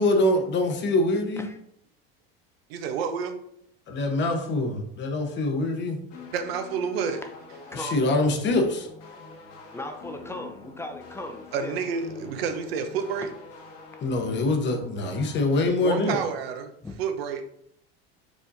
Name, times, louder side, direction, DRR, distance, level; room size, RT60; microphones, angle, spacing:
voice 1, 0.0-1.5 3.9-6.0 7.7-8.9 14.0-16.2, left 2 dB, 40° left, 5 dB, 0.8 m, -24 dB
voice 2, 2.7-3.4 6.3-7.2 11.5-13.3 15.8-16.7 17.0-17.4, right 6 dB, 85° right, 7 dB, 0.7 m, -29 dB
sound 1, 6.1-15.7, left 3 dB, 55° left, 1.2 m, -45 dB
voice 3, 7.7-8.0 9.7-11.8 16.8-16.9, left 1 dB, 10° left, 5 dB, 0.5 m, -37 dB
4.9 x 3.6 x 2.6 m, 0.71 s
supercardioid pair, 100°, 30 cm